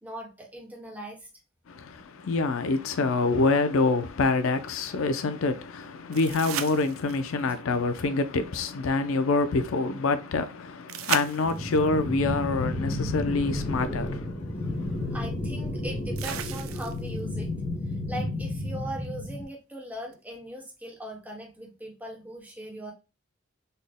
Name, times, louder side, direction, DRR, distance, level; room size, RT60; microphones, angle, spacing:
voice 1, 0.0-1.3 15.1-17.5 18.1-22.9, equal, 10° right, 0.9 m, -39 dB
voice 2, 1.7-15.1, left 3 dB, 85° left, 0.5 m, -26 dB
sound 1, 6.1-7.4 10.9-11.9 13.8-13.9 16.2-17.2 20.1-20.2, right 9 dB, 85° right, 0.4 m, -34 dB
sound 2, 11.4-19.4, left 2 dB, 40° left, 0.7 m, -32 dB
4.1 x 2.1 x 3.5 m
head